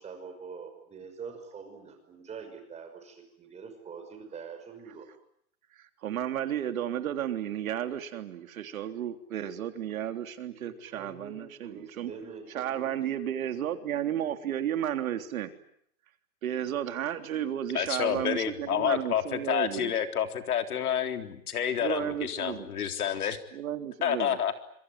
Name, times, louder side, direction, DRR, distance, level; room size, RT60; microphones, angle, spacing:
voice 1, 0.0-5.1 10.6-12.9, right 5 dB, 15° right, 6 dB, 5.8 m, -45 dB
voice 2, 5.7-12.1 12.5-15.5 16.4-19.9 21.8-22.7 23.5-24.4, right 10 dB, 70° right, 8 dB, 3.5 m, -33 dB
voice 3, 17.7-23.4 24.0-24.5, left 9 dB, 85° left, 7 dB, 3.8 m, -29 dB
27.0 x 23.0 x 9.4 m, 0.69 s
hypercardioid pair, 155°, 43 cm